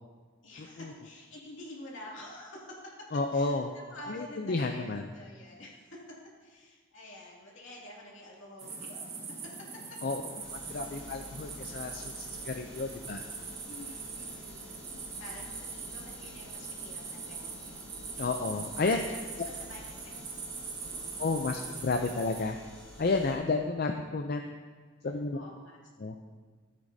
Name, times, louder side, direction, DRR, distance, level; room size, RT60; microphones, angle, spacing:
voice 1, 0.4-2.8 3.3-6.0 6.4-9.2 13.7-17.8 19.1-19.2 19.4-20.1 20.7-21.1 25.3-25.8, left 1 dB, 65° left, -4 dB, 2.5 m, -49 dB
voice 2, 3.1-3.7 4.1-5.1 10.0-10.2 10.7-13.2 18.2-19.0 21.2-22.6 23.0-24.5 25.0-25.4 26.0-26.1, left 3 dB, 45° left, 4 dB, 0.5 m, -31 dB
sound 1, 8.6-22.4, right 4 dB, 30° right, 1.2 m, -42 dB
sound 2, 10.4-23.4, left 1 dB, 5° left, 2.3 m, -50 dB
14.0 x 8.4 x 2.7 m, 1.5 s
head